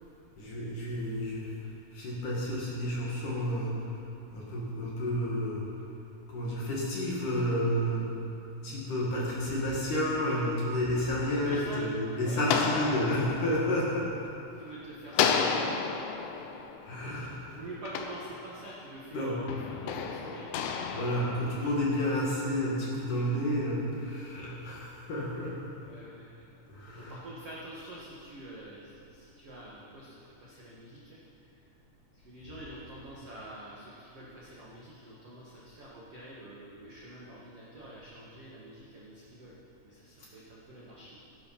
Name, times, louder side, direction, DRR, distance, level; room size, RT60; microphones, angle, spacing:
voice 1, 0.4-4.0 4.3-5.7 6.3-8.1 8.6-14.1 16.8-17.5 19.1-19.4 20.9-25.7 26.7-27.3, equal, 50° left, -5 dB, 2.7 m, -31 dB
sound 1, 11.0-14.7 15.1-18.9 19.5-22.1, left 6 dB, 85° left, 3.4 m, -33 dB
voice 2, 11.3-11.8 12.1-12.6 14.5-15.5 17.5-20.6 25.8-26.4 26.9-31.2 32.1-39.5 39.8-41.2, right 1 dB, 85° right, -6 dB, 1.3 m, -46 dB
15.5 x 10.5 x 5.8 m, 2.7 s
omnidirectional pair, 5.7 m